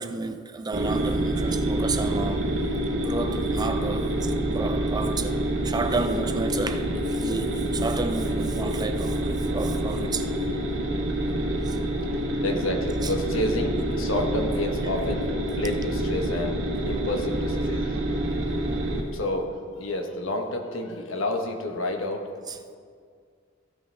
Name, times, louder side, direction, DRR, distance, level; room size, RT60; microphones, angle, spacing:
voice 1, 0.0-2.5 2.9-5.4 5.6-10.3 11.7-11.8 13.0-13.1 22.5-22.6, right 3 dB, 20° right, 0.5 m, -31 dB
sound 1, 0.7-19.0, right 1 dB, 80° right, 1.5 m, -27 dB
voice 2, 12.4-15.3 15.5-18.1 19.1-22.3, left 1 dB, 85° left, 1.2 m, -29 dB
15.0 x 9.1 x 3.4 m
head